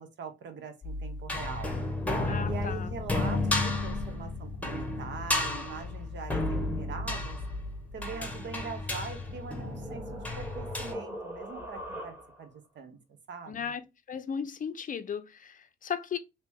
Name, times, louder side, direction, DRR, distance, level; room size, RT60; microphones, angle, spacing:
voice 1, 0.0-1.8 2.4-6.4 6.8-7.4 7.9-13.0 13.3-13.7, right 5 dB, 65° right, 1.0 m, -42 dB
sound 1, 0.8-10.9, left 2 dB, 5° left, 1.0 m, -32 dB
voice 2, 2.0-2.9 13.5-16.2, left 7 dB, 40° left, 0.5 m, -36 dB
sound 2, 8.8-12.6, equal, 10° right, 1.6 m, -42 dB
2.9 x 2.9 x 3.4 m
cardioid pair, 90°, 20 cm